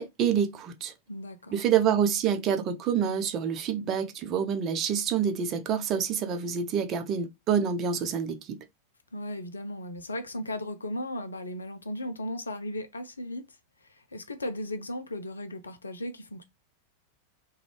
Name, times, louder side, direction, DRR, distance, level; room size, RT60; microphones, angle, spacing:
voice 1, 0.0-0.9 1.5-8.6, right 7 dB, 35° right, 0.5 m, -27 dB
voice 2, 1.1-1.6 9.1-16.4, left 1 dB, 75° left, 0.4 m, -36 dB
2.4 x 2.3 x 3.2 m
figure-of-eight pair, 90°, 0 cm